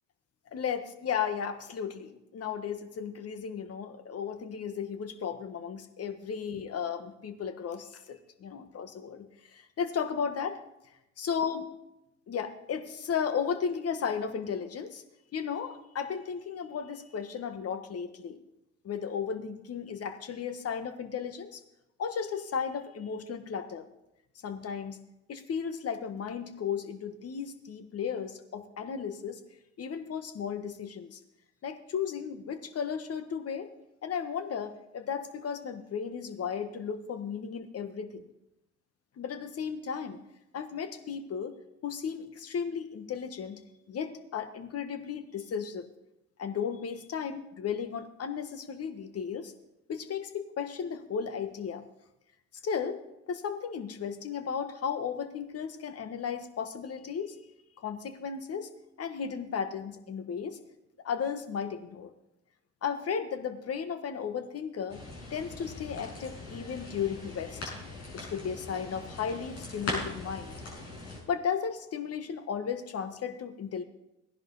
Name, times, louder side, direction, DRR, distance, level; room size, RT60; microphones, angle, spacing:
voice 1, 0.5-10.6 11.2-11.6 12.3-15.0 15.3-18.4 18.8-21.6 22.0-23.8 24.4-25.0 25.3-29.4 29.8-31.2 31.6-33.7 34.0-38.3 39.2-40.2 40.5-41.6 41.8-43.6 43.9-45.9 46.4-49.5 49.9-51.8 52.6-53.0 53.3-57.4 57.8-58.7 59.0-60.6 61.0-62.1 62.8-65.0 65.3-67.7 68.1-70.6 71.3-73.8, left 7 dB, 40° left, 9 dB, 1.5 m, -35 dB
sound 1, 64.9-71.2, left 2 dB, 80° left, 6.2 m, -40 dB
17.5 x 10.5 x 4.1 m, 0.89 s
hypercardioid pair, 60°, 35 cm